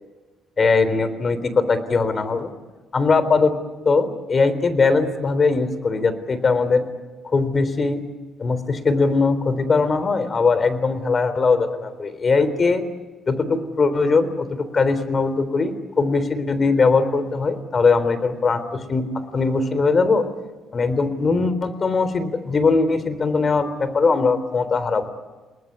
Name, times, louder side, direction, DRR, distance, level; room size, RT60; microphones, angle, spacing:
voice 1, 0.6-2.5 2.9-3.5 3.9-6.9 7.3-8.0 8.4-12.8 13.3-19.1 19.3-20.3 20.7-25.1, left 4 dB, 40° left, 13 dB, 3.6 m, -20 dB
29.5 x 20.0 x 9.6 m, 1.2 s
cardioid pair, 90°, 0 cm